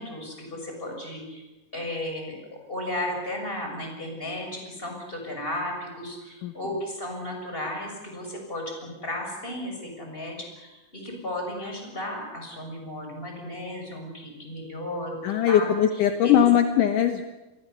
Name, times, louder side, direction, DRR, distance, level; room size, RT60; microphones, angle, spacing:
voice 1, 0.0-1.4 1.7-2.4 2.7-15.2 15.5-15.7 16.2-16.4, left 1 dB, 15° left, 2 dB, 6.7 m, -34 dB
voice 2, 15.2-17.2, left 9 dB, 70° left, 6 dB, 2.5 m, -20 dB
28.5 x 22.5 x 6.9 m, 1.1 s
omnidirectional pair, 4.0 m